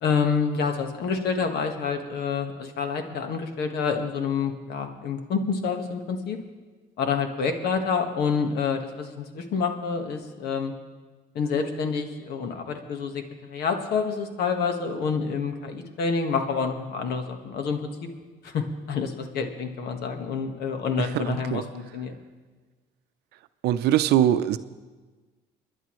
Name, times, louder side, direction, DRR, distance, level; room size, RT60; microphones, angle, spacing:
voice 1, 0.0-6.4 7.0-10.7 11.3-18.1 18.4-22.1, left 5 dB, 70° left, 5 dB, 1.6 m, -28 dB
voice 2, 21.1-21.6 23.6-24.6, right 11 dB, 75° right, 12 dB, 0.6 m, -22 dB
29.5 x 10.5 x 3.2 m, 1.4 s
cardioid pair, 110°, 17 cm